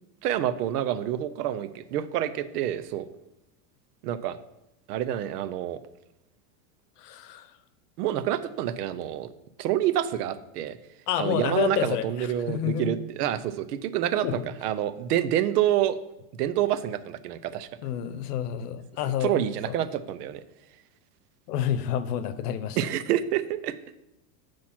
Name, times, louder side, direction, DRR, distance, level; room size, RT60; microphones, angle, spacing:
voice 1, 0.2-3.1 4.0-4.4 4.9-5.8 8.0-9.3 9.6-10.8 11.2-16.0 16.4-17.7 19.2-20.4 22.8-23.7, right 11 dB, 80° right, 13 dB, 0.7 m, -27 dB
voice 2, 7.0-7.5 11.1-12.9 14.2-14.3 17.8-19.4 19.7-19.8 21.5-22.8, left 10 dB, 80° left, 12 dB, 0.8 m, -29 dB
8.3 x 3.2 x 5.9 m, 0.90 s
supercardioid pair, 165°, 46 cm